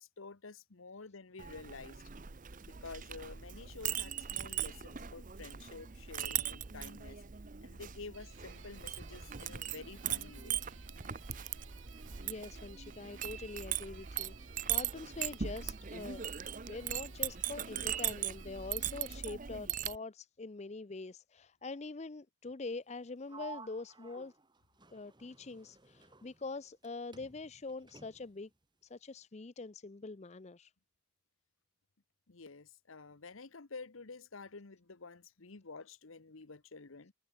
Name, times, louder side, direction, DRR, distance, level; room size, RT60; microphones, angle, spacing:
voice 1, 0.0-2.0 2.6-7.2 7.6-10.6 32.3-37.1, left 4 dB, 75° left, 1.1 m, -50 dB
Chink clink, 1.4-20.0, right 10 dB, 40° right, 0.7 m, -40 dB
sound 1, 8.1-19.2, right 8 dB, 75° right, 7.0 m, -59 dB
voice 2, 12.1-16.3 16.7-24.3 24.9-28.5 28.8-30.7, left 3 dB, 30° left, 0.5 m, -44 dB
Sliding door, 23.3-26.9 27.1-28.4, right 3 dB, 20° right, 3.5 m, -54 dB
head